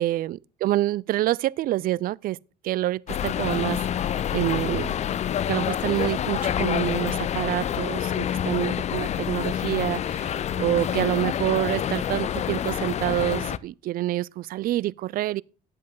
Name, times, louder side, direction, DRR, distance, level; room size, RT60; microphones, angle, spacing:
voice 1, 0.0-2.4 2.6-3.8 4.3-5.0 5.5-10.3 10.6-15.4, right 15 dB, 60° right, 0.4 m, -27 dB
sound 1, 3.1-13.6, left 9 dB, 40° left, 0.5 m, -27 dB
10.5 x 7.5 x 3.8 m
cardioid pair, 110°, 17 cm